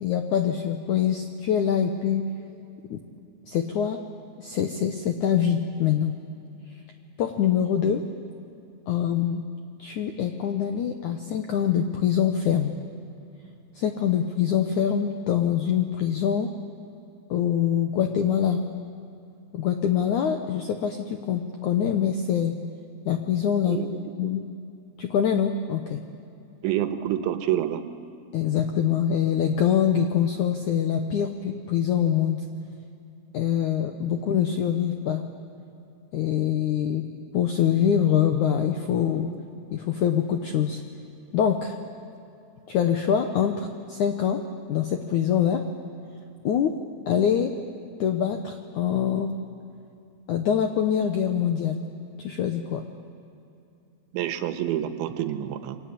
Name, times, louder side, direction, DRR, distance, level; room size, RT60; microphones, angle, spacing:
voice 1, 0.0-2.2 2.9-3.0 3.5-4.0 4.4-6.1 7.2-8.0 8.9-9.4 9.8-12.7 13.8-16.5 17.3-18.6 19.5-22.6 23.1-23.8 24.2-24.5 25.0-26.0 28.3-32.4 33.3-35.2 36.1-37.1 37.3-39.3 39.7-40.8 41.3-41.8 42.7-44.4 44.7-45.6 46.4-46.7 47.1-47.5 48.0-49.3 50.3-51.8 52.2-52.8, left 9 dB, 75° left, 6 dB, 1.7 m, -24 dB
voice 2, 26.6-27.8 54.1-55.8, right 11 dB, 85° right, 9 dB, 3.6 m, -27 dB
29.0 x 24.0 x 8.6 m, 2.7 s
omnidirectional pair, 5.1 m